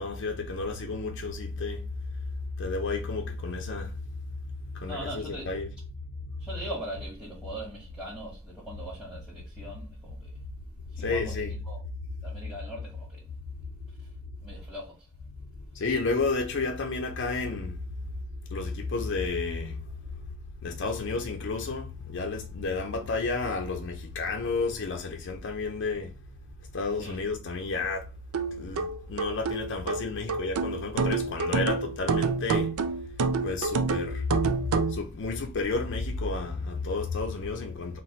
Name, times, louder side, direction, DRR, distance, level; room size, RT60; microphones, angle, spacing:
voice 1, 0.0-1.9 2.6-4.0 4.5-5.7 11.0-11.6 15.7-17.8 18.5-19.8 20.6-26.1 26.7-28.1 28.6-32.8 33.4-34.3 34.9-38.0, left 3 dB, 60° left, 0.5 m, -31 dB
voice 2, 4.8-5.5 6.4-10.4 10.9-11.8 12.2-13.2 14.4-15.1 26.9-27.2, right 1 dB, 5° right, 1.1 m, -40 dB
sound 1, 28.3-35.0, right 4 dB, 90° right, 0.4 m, -28 dB
4.0 x 2.1 x 4.3 m
head